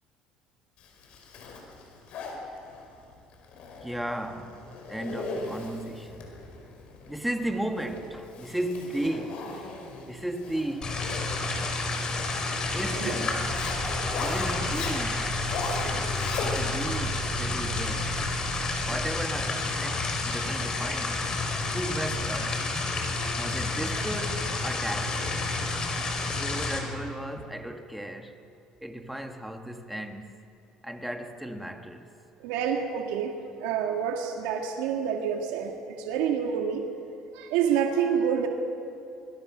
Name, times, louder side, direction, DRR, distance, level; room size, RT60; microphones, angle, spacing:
Zipper (clothing), 0.8-17.0, left 3 dB, 60° left, 5.3 m, -39 dB
voice 1, 3.8-6.3 7.1-9.7 10.0-11.0 12.3-13.6 14.2-15.4 16.4-18.2 18.8-21.3 21.7-22.6 23.4-25.5 26.4-28.4 28.8-30.4 30.8-32.1, right 1 dB, 5° right, 1.8 m, -35 dB
sound 1, 10.8-26.8, left 3 dB, 35° left, 4.6 m, -30 dB
sound 2, 13.4-19.1, right 9 dB, 45° right, 5.1 m, -41 dB
voice 2, 32.4-36.8 37.3-38.5, right 8 dB, 85° right, 1.9 m, -28 dB
25.0 x 22.5 x 6.2 m
supercardioid pair, 100°, 2 cm